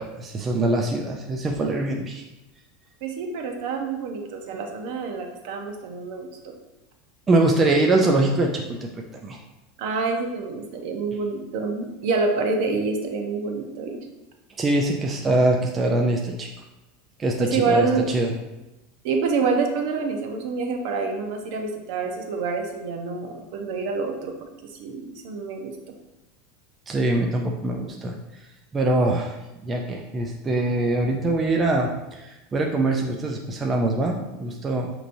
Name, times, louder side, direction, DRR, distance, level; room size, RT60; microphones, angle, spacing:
voice 1, 0.0-2.2 7.3-9.4 14.6-16.5 17.2-18.3 26.9-28.2 28.7-29.4 29.6-34.9, right 2 dB, 20° right, 1 dB, 0.4 m, -23 dB
voice 2, 3.0-6.5 9.8-14.0 17.4-18.1 19.0-25.7, right 4 dB, 60° right, 3 dB, 0.7 m, -27 dB
6.5 x 3.0 x 2.6 m, 0.99 s
supercardioid pair, 155°, 0 cm